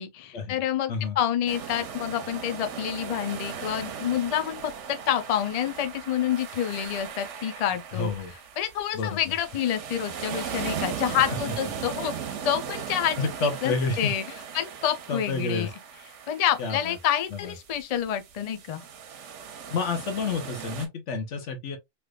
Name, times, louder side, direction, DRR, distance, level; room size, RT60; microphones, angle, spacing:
voice 1, 0.0-8.1 8.6-12.1 12.4-13.2 13.4-14.2 14.5-15.7 16.3-18.8, left 10 dB, 50° left, 0.4 m, -28 dB
sound 1, 1.5-20.9, right 7 dB, 85° right, 1.0 m, -38 dB
voice 2, 7.9-8.3 8.9-9.2 11.3-11.4 13.2-14.1 15.1-15.7 16.6-17.0 17.3-17.5 19.7-21.8, left 4 dB, 90° left, 1.1 m, -29 dB
3.3 x 3.0 x 2.3 m
omnidirectional pair, 1.2 m